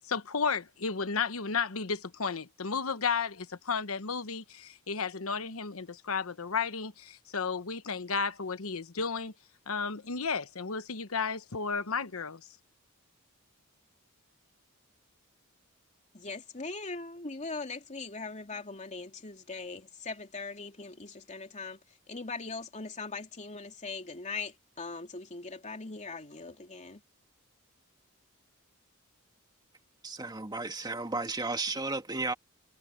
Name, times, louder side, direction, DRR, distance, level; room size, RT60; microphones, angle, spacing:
voice 1, 0.1-9.3 9.7-12.4, left 5 dB, 75° left, 1.1 m, -33 dB
voice 2, 16.1-21.8 22.1-27.0, left 3 dB, 35° left, 3.0 m, -40 dB
voice 3, 30.0-32.3, right 3 dB, 20° right, 2.2 m, -33 dB
head